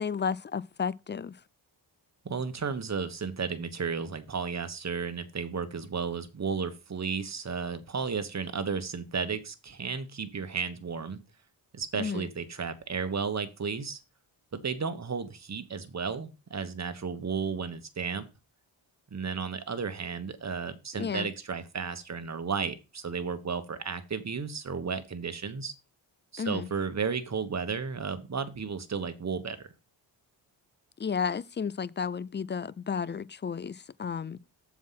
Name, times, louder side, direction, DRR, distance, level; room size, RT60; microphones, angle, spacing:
voice 1, 0.0-1.3 12.0-12.3 21.0-21.3 26.4-26.7 31.0-34.4, left 6 dB, 25° left, 0.3 m, -32 dB
voice 2, 2.2-11.2 11.7-14.0 14.5-18.3 19.1-25.7 26.3-29.7, right 5 dB, 35° right, 1.2 m, -33 dB
7.2 x 4.8 x 5.6 m
cardioid pair, 80°, 46 cm